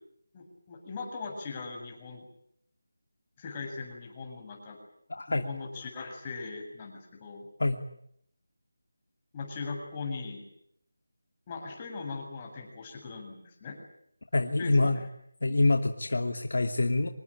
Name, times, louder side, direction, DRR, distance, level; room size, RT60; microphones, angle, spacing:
voice 1, 0.3-2.2 3.4-4.8 5.3-7.5 9.3-10.4 11.5-13.8 14.6-15.1, left 4 dB, 20° left, 1 dB, 7.7 m, -39 dB
voice 2, 5.1-5.5 7.6-7.8 14.3-15.0 15.4-17.1, left 2 dB, 65° left, 5 dB, 2.6 m, -26 dB
26.5 x 21.0 x 9.2 m, 0.71 s
figure-of-eight pair, 170°, 0 cm